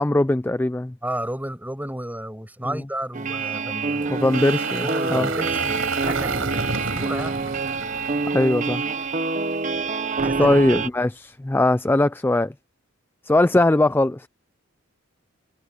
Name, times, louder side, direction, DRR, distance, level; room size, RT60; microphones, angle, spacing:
voice 1, 0.0-0.9 2.7-2.8 4.1-5.3 8.3-8.8 10.4-12.5 13.3-14.3, left 2 dB, 10° left, 0.3 m, -20 dB
voice 2, 1.0-4.3 4.8-7.5 9.8-10.5, right 1 dB, 10° right, 6.3 m, -33 dB
sound 1, 3.1-10.9, right 4 dB, 35° right, 1.1 m, -26 dB
Engine, 4.0-9.3, right 4 dB, 70° right, 6.6 m, -31 dB
head